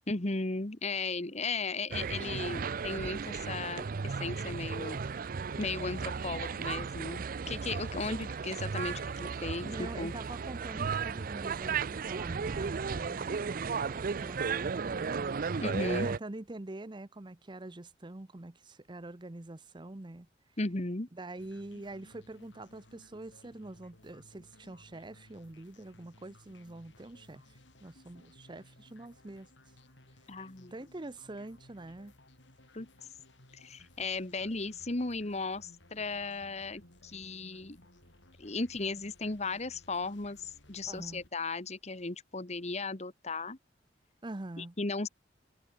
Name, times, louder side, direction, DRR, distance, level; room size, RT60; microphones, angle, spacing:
voice 1, 0.1-5.0 5.6-10.1 15.6-16.1 20.6-21.1 30.3-30.7 32.7-32.9 33.5-37.8 38.4-43.6 44.6-45.1, left 3 dB, 40° left, 1.5 m, -36 dB
sound 1, 1.9-16.2, right 5 dB, 50° right, 0.5 m, -35 dB
voice 2, 9.6-15.4 15.8-20.3 21.1-29.5 30.7-32.1 40.8-41.2 44.2-44.8, right 2 dB, 25° right, 0.8 m, -45 dB
sound 2, 21.4-41.3, left 1 dB, 85° left, 6.4 m, -59 dB
head